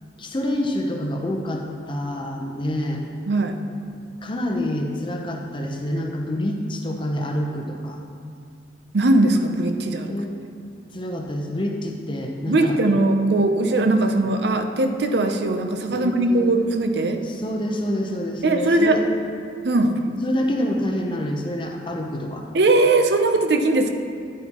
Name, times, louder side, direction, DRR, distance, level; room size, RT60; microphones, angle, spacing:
voice 1, 0.2-3.0 4.2-8.0 10.1-10.3 10.9-12.8 13.8-13.9 15.9-16.6 17.2-19.0 20.2-22.5, left 1 dB, 25° left, 1 dB, 0.7 m, -27 dB
voice 2, 3.3-3.6 8.9-10.1 12.5-17.2 18.4-19.0 19.6-19.9 22.5-23.9, right 2 dB, 65° right, 6 dB, 0.6 m, -20 dB
10.5 x 8.2 x 3.0 m, 2.2 s
head